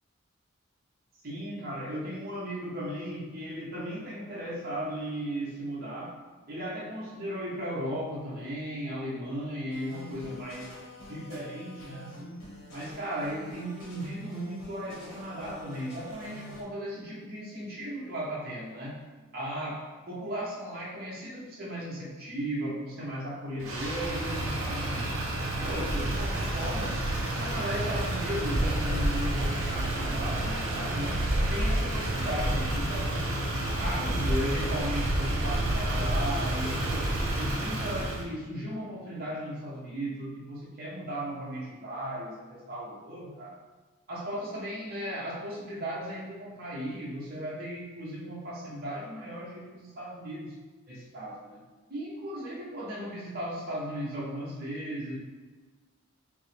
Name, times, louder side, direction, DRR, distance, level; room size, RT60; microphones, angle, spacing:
voice 1, 1.2-6.1 6.5-10.7 11.1-12.4 12.7-19.0 19.3-25.1 25.5-27.0 27.4-31.2 31.5-33.2 33.7-43.5 44.1-50.5 50.9-51.6 51.9-55.2, equal, 45° right, -6 dB, 0.9 m, -36 dB
sound 1, 9.7-16.6, equal, 90° left, 1.1 m, -47 dB
Motor vehicle (road), 23.6-38.2, right 1 dB, 75° right, 0.8 m, -29 dB
5.2 x 2.0 x 3.2 m, 1.3 s
head